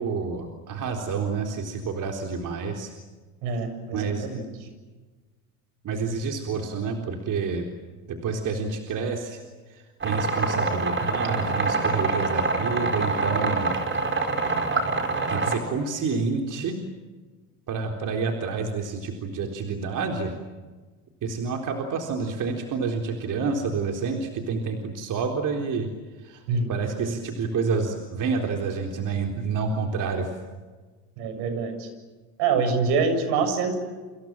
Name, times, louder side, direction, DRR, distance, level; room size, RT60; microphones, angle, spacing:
voice 1, 0.0-2.9 3.9-4.3 5.8-7.7 8.1-9.4 9.7-13.7 15.3-16.8 17.7-20.3 21.2-25.9 26.2-26.4 26.7-30.3, right 4 dB, 45° right, 3 dB, 3.9 m, -28 dB
voice 2, 3.4-4.4 15.5-15.6 26.5-26.7 27.0-27.1 31.2-31.9 32.4-33.8, right 5 dB, 65° right, 9 dB, 7.4 m, -25 dB
sound 1, 10.0-15.6, right 3 dB, 25° right, 4.9 m, -25 dB
29.5 x 27.0 x 7.5 m, 1.3 s
supercardioid pair, 95°, 44 cm